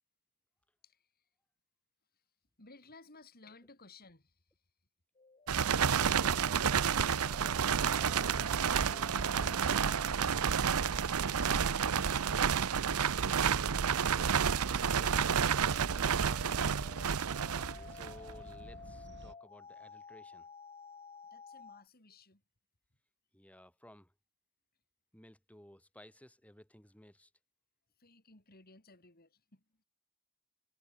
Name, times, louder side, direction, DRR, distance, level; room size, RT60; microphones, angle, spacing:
voice 1, 2.6-4.4 10.6-13.0 15.7-17.1 21.3-22.4 28.0-29.8, left 3 dB, 45° left, 4.9 m, -59 dB
sound 1, 5.2-12.5 14.5-21.8, left 4 dB, 30° left, 1.3 m, -52 dB
sound 2, 5.5-18.3, right 7 dB, 90° right, 0.7 m, -30 dB
voice 2, 6.2-10.2 13.8-15.2 17.6-20.5 23.3-24.1 25.1-27.3, equal, 5° left, 7.8 m, -57 dB
sound 3, 12.6-19.3, right 1 dB, 55° right, 4.3 m, -49 dB
head